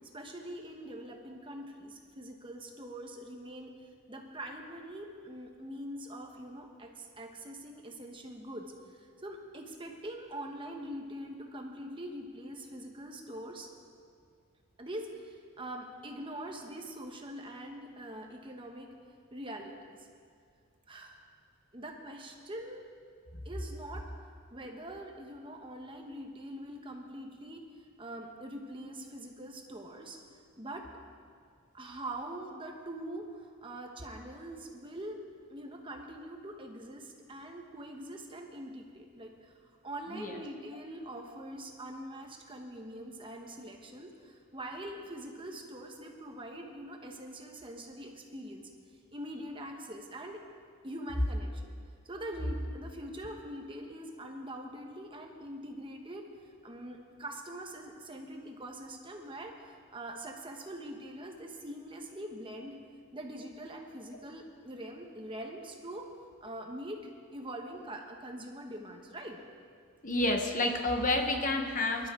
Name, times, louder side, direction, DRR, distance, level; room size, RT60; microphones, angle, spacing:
voice 1, 0.1-3.7 4.1-13.7 14.8-18.9 19.3-20.1 20.9-21.2 21.7-22.9 23.4-24.1 24.5-27.7 28.0-30.2 30.6-30.9 31.7-35.2 35.5-48.7 49.1-50.4 50.8-51.7 52.0-56.3 56.6-62.8 63.1-66.1 66.4-67.0 67.3-69.4, right 1 dB, 25° right, 2 dB, 1.2 m, -43 dB
voice 2, 70.0-72.1, left 2 dB, 35° left, 3 dB, 1.2 m, -29 dB
24.5 x 12.0 x 3.8 m, 2.2 s
head